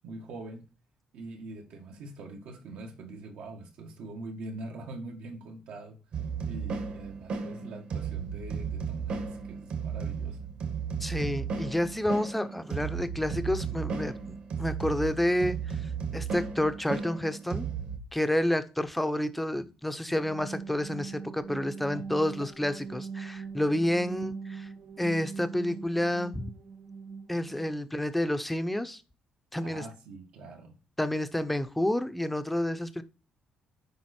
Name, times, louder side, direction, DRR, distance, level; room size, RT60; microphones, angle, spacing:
voice 1, 0.0-0.7 1.1-6.0 6.5-10.5 21.9-22.1 22.4-22.5 29.6-30.8, right 2 dB, 75° right, 1.6 m, -43 dB
sound 1, 6.1-18.0, right 6 dB, 55° right, 1.5 m, -34 dB
voice 2, 11.0-15.8 16.1-17.7 18.1-24.7 25.0-26.4 27.3-29.0 29.5-29.8 31.0-33.0, left 1 dB, 5° left, 0.6 m, -29 dB
sound 2, 19.9-27.7, right 5 dB, 35° right, 0.5 m, -41 dB
7.5 x 5.0 x 4.3 m
cardioid pair, 155°, 2 cm